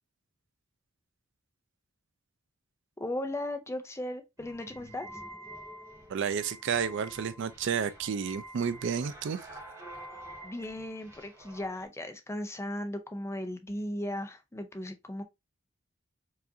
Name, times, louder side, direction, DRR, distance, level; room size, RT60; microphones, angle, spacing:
voice 1, 3.0-5.1 10.4-15.2, left 1 dB, 15° left, 0.5 m, -36 dB
sound 1, 4.4-11.9, right 1 dB, 15° right, 1.1 m, -48 dB
voice 2, 6.1-9.4, right 7 dB, 60° right, 0.4 m, -31 dB
4.7 x 2.5 x 2.7 m
head